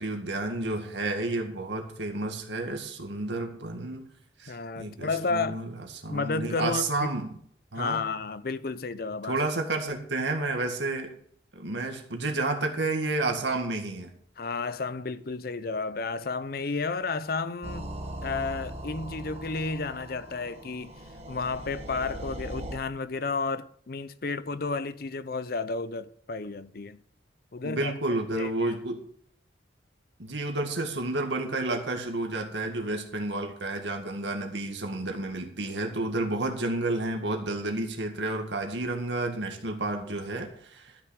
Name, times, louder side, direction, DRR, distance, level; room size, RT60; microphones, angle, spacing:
voice 1, 0.0-4.1 4.4-5.7 6.0-7.3 7.7-8.1 9.3-11.1 11.5-14.1 27.6-29.0 30.2-41.0, right 2 dB, 75° right, 1.9 m, -31 dB
voice 2, 4.5-5.7 6.1-7.1 7.7-9.4 14.4-17.9 18.2-20.9 21.3-27.0 27.5-28.7, left 4 dB, 55° left, 0.6 m, -32 dB
sound 1, 17.6-22.8, right 1 dB, 35° right, 1.4 m, -39 dB
13.0 x 6.2 x 6.4 m
head